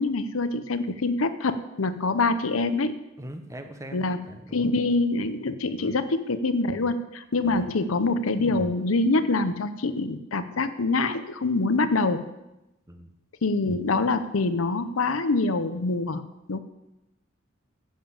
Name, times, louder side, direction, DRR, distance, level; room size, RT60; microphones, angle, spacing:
voice 1, 0.0-3.0 3.9-4.2 4.5-12.2 13.4-16.2 16.5-16.6, left 3 dB, 90° left, 11 dB, 0.8 m, -25 dB
voice 2, 3.2-4.7 5.8-6.0 7.4-7.7 12.9-13.1, right 1 dB, 15° right, 7 dB, 0.9 m, -42 dB
10.5 x 7.4 x 7.2 m, 0.95 s
head